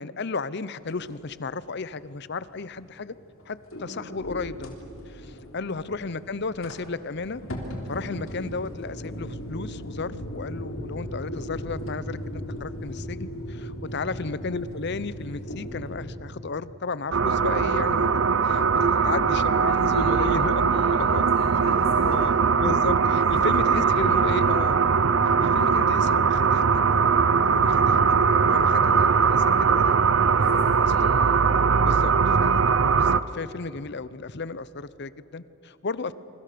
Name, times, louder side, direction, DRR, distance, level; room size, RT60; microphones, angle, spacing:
voice 1, 0.0-3.1 3.5-4.7 5.1-7.4 7.9-18.1 18.4-20.6 20.9-21.2 22.0-22.3 22.6-24.8 25.2-26.7 27.4-27.6 28.3-30.0 30.4-30.8 31.8-32.1 32.4-32.7 33.0-36.1, left 4 dB, 55° left, 17 dB, 0.7 m, -33 dB
sound 1, 0.8-16.1, equal, 75° left, 3.5 m, -37 dB
voice 2, 13.8-14.2 18.7-19.0 19.6-22.3 23.1-24.7 27.5-27.9 29.4-29.8 30.3-31.3 35.9-36.1, left 1 dB, 30° left, -3 dB, 6.0 m, -42 dB
sound 2, 17.1-33.2, right 5 dB, 65° right, 0.7 m, -21 dB
27.0 x 24.0 x 6.9 m, 3.0 s
head